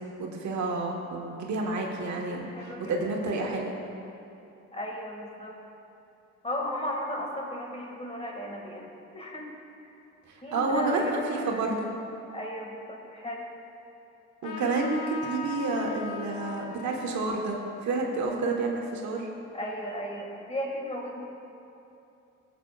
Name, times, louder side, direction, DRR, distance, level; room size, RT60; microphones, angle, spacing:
voice 1, 0.0-3.7 10.5-11.9 14.4-19.3, right 3 dB, 70° right, 0 dB, 1.4 m, -29 dB
voice 2, 2.4-3.4 4.7-5.6 6.4-9.5 10.4-11.8 12.3-13.5 19.5-21.2, left 1 dB, 20° left, -1 dB, 2.0 m, -35 dB
Trumpet, 14.4-19.4, left 5 dB, 85° left, 0.9 m, -41 dB
17.0 x 8.4 x 2.4 m, 2.8 s
cardioid pair, 90°, 30 cm